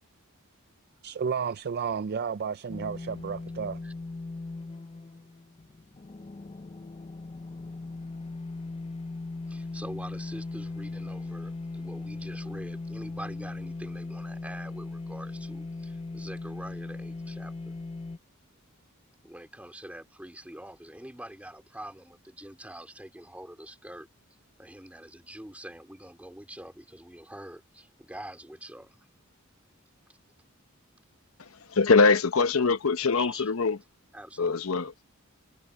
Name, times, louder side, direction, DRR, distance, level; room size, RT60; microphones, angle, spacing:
voice 1, 1.0-3.8, right 6 dB, 50° right, 0.4 m, -32 dB
sound 1, 2.7-18.2, left 3 dB, 25° left, 0.4 m, -38 dB
voice 2, 9.5-17.7 19.2-24.1 24.6-29.1 33.2-33.5 34.1-34.6, right 1 dB, 5° right, 3.4 m, -45 dB
voice 3, 31.4-33.8 34.4-34.9, left 4 dB, 75° left, 0.9 m, -23 dB
head